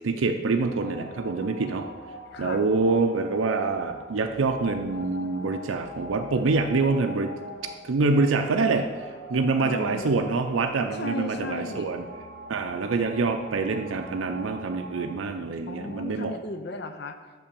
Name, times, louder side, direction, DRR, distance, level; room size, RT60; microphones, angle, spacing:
voice 1, 0.0-1.9 2.4-7.3 7.8-12.0 12.5-16.3, right 3 dB, 85° right, 5 dB, 0.5 m, -26 dB
sound 1, 0.6-15.1, equal, 75° left, 2.6 m, -42 dB
voice 2, 2.3-2.6 9.6-10.2 10.9-11.9 15.7-17.3, left 2 dB, 55° left, 8 dB, 0.6 m, -35 dB
6.1 x 5.6 x 6.8 m, 1.4 s
head